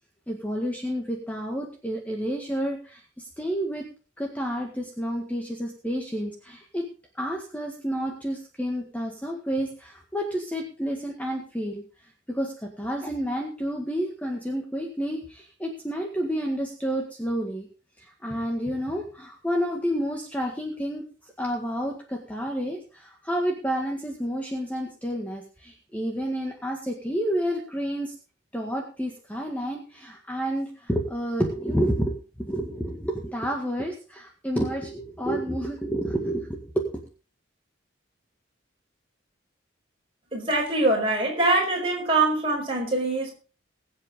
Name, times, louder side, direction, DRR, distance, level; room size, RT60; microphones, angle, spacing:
voice 1, 0.3-3.8 4.2-6.9 7.2-11.8 12.3-17.7 18.0-21.0 21.4-28.1 28.5-37.0, equal, 10° left, 1 dB, 1.8 m, -30 dB
voice 2, 40.3-43.3, right 2 dB, 25° right, -1 dB, 5.0 m, -23 dB
21.5 x 7.9 x 3.8 m, 0.34 s
head